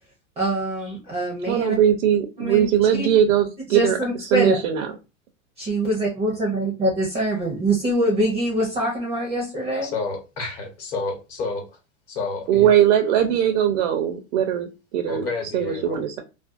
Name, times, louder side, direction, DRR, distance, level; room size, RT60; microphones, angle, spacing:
voice 1, 0.4-1.7 2.4-2.7 3.0-3.1 3.7-4.6 5.6-9.9, right 1 dB, 15° right, -1 dB, 0.5 m, -24 dB
voice 2, 1.5-4.9 12.5-15.3 15.5-16.2, right 10 dB, 65° right, 5 dB, 0.6 m, -20 dB
voice 3, 9.8-11.8 12.1-12.7 15.1-16.0, left 3 dB, 40° left, 0 dB, 1.0 m, -30 dB
2.5 x 2.2 x 2.4 m, 0.28 s
supercardioid pair, 145°, 40 cm